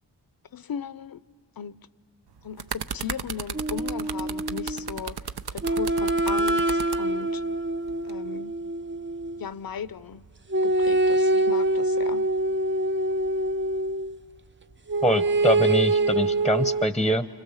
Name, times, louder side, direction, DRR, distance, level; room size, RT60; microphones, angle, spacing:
voice 1, 0.5-1.2 1.6-1.8 2.4-7.4 8.0-8.6 9.4-10.3 10.6-12.3, left 7 dB, 55° left, 0.7 m, -37 dB
sound 1, 2.3-7.0 7.9-8.1, right 7 dB, 60° right, 0.7 m, -34 dB
sound 2, 3.5-5.0 5.6-9.5 10.5-14.2 14.9-16.9, right 2 dB, 25° right, 0.6 m, -25 dB
voice 2, 15.0-17.3, equal, ahead, 0.8 m, -24 dB
30.0 x 26.0 x 7.1 m
cardioid pair, 50°, 43 cm